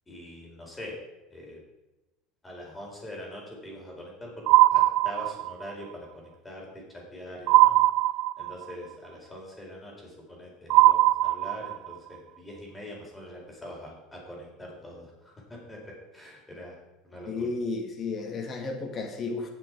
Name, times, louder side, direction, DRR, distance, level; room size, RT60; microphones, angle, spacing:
voice 1, 0.1-1.0 1.3-1.6 2.4-7.8 8.4-17.5, left 1 dB, 10° left, -2 dB, 4.1 m, -43 dB
sound 1, 4.5-5.7 7.5-8.7 10.7-11.9, right 17 dB, 60° right, 0.4 m, -20 dB
voice 2, 17.3-19.5, left 3 dB, 30° left, 3 dB, 2.1 m, -33 dB
18.0 x 6.2 x 4.7 m, 1.0 s
supercardioid pair, 130°, 0 cm